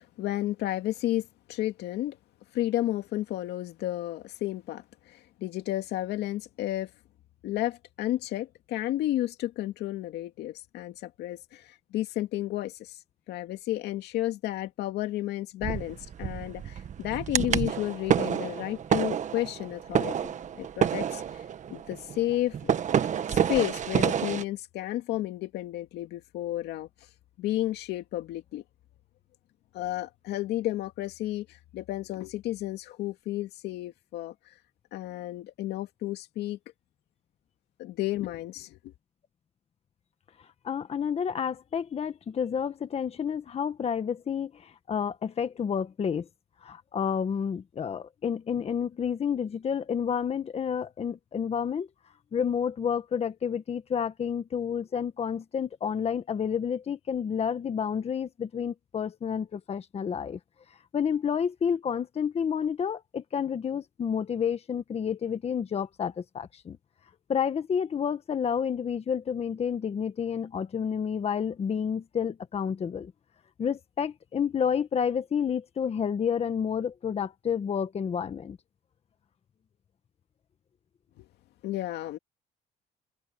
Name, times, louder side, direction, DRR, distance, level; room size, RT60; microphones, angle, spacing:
voice 1, 0.0-2.2 2.5-6.9 7.4-13.0 13.3-20.2 20.6-21.2 21.7-22.7 23.3-26.9 27.4-28.6 29.7-34.3 34.9-36.6 37.8-38.9 81.2-81.3 81.6-82.2, left 14 dB, 80° left, 2.3 m, -32 dB
sound 1, 15.6-24.4, right 8 dB, 45° right, 1.5 m, -29 dB
voice 2, 40.6-46.3 46.6-51.9 52.3-60.4 60.9-66.8 67.3-73.1 73.6-78.6, left 7 dB, 35° left, 1.4 m, -30 dB
cardioid pair, 110°, 17 cm